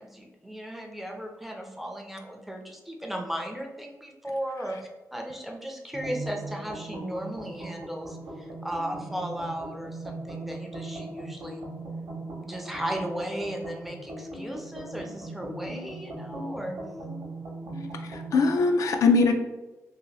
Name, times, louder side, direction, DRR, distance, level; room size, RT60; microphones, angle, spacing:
voice 1, 0.0-4.8 5.1-11.6 12.3-16.8, right 1 dB, 5° right, 1 dB, 0.4 m, -36 dB
sound 1, 5.9-18.7, right 2 dB, 60° right, 0.7 m, -39 dB
voice 2, 18.0-19.3, left 4 dB, 75° left, 5 dB, 0.3 m, -22 dB
2.8 x 2.6 x 3.1 m, 1.1 s
wide cardioid pair, 165°, 6 cm